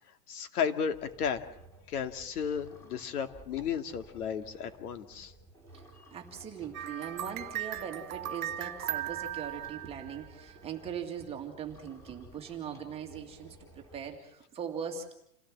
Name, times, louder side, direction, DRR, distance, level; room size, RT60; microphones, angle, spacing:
voice 1, 0.3-1.4 1.9-5.3, left 7 dB, 70° left, 8 dB, 2.5 m, -33 dB
sound 1, 0.9-14.2, right 1 dB, 5° left, 4.4 m, -55 dB
voice 2, 6.1-15.1, right 7 dB, 10° right, 2 dB, 2.1 m, -40 dB
sound 2, 6.7-10.5, right 12 dB, 60° right, 1.2 m, -38 dB
28.5 x 17.5 x 7.5 m, 0.77 s
supercardioid pair, 175°, 47 cm